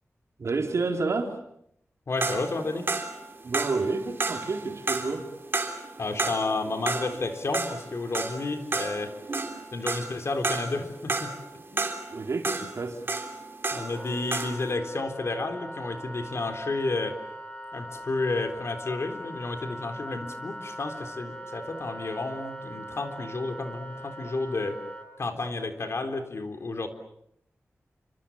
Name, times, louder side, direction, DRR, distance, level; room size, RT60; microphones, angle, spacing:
voice 1, 0.4-1.4 3.4-5.3 12.1-13.0, right 3 dB, 70° right, 4.2 m, -29 dB
voice 2, 2.1-3.0 6.0-9.1 9.7-11.3 11.7-11.9 13.7-17.2 17.7-24.8 25.2-26.9, left 3 dB, 60° left, 3.8 m, -31 dB
sound 1, 2.2-14.0 14.3-14.7, right 3 dB, 45° right, 3.5 m, -31 dB
Wind instrument woodwind instrument, 13.8-25.1, equal, 25° left, 5.7 m, -41 dB
29.5 x 26.0 x 7.4 m
wide cardioid pair, 110°, 5 cm